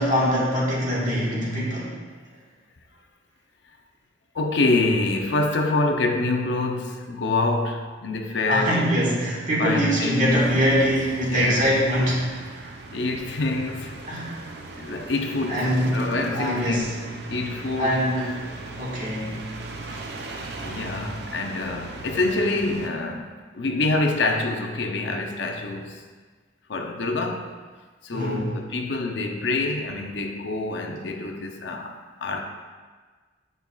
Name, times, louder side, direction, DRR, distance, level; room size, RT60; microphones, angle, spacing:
voice 1, 0.0-1.9 8.5-12.7 14.1-14.3 15.5-16.0 16.3-16.9 17.8-18.4 18.7-19.4 19.9-20.1 28.1-28.5, equal, 40° right, -6 dB, 1.7 m, -23 dB
voice 2, 4.3-8.8 9.6-10.5 11.3-11.7 12.9-14.0 14.7-16.8 17.2-18.0 20.6-26.0 26.7-27.5 28.0-32.4, left 2 dB, 70° left, 3 dB, 0.6 m, -26 dB
sound 1, 10.3-22.9, right 2 dB, 60° right, 0.6 m, -38 dB
9.4 x 5.3 x 2.4 m, 1.5 s
head